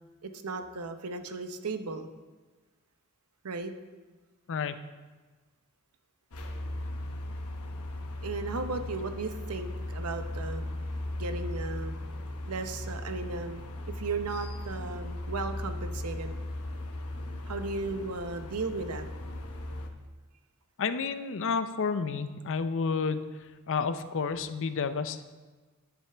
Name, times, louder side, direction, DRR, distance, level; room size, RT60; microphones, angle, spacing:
voice 1, 0.2-2.1 3.4-3.7 8.2-10.7 11.2-12.0 12.5-16.3 17.5-19.1, right 3 dB, 80° right, 8 dB, 0.8 m, -35 dB
sound 1, 6.3-19.9, left 1 dB, 80° left, 1.0 m, -37 dB
voice 2, 20.8-25.2, left 5 dB, 60° left, 11 dB, 0.5 m, -31 dB
10.0 x 9.7 x 3.4 m, 1.3 s
head